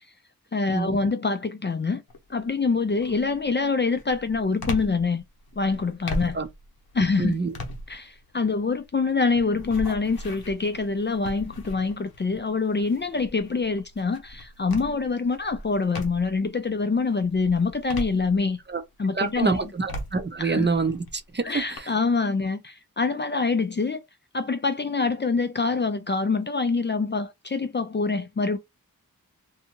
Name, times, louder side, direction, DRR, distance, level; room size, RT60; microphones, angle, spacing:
voice 1, 0.5-2.0 2.3-5.2 5.6-6.4 6.9-7.4 7.9-18.6 19.0-19.6 20.4-20.7 21.4-24.0 24.3-28.6, left 4 dB, 30° left, 0.4 m, -25 dB
sound 1, 2.1-2.5 3.0-16.5 16.9-18.8 19.2-21.8, left 1 dB, 85° left, 0.8 m, -39 dB
voice 2, 7.2-7.6 18.7-18.8 19.1-21.9, right 4 dB, 30° right, 0.6 m, -26 dB
2.7 x 2.3 x 2.9 m
cardioid pair, 50°, 35 cm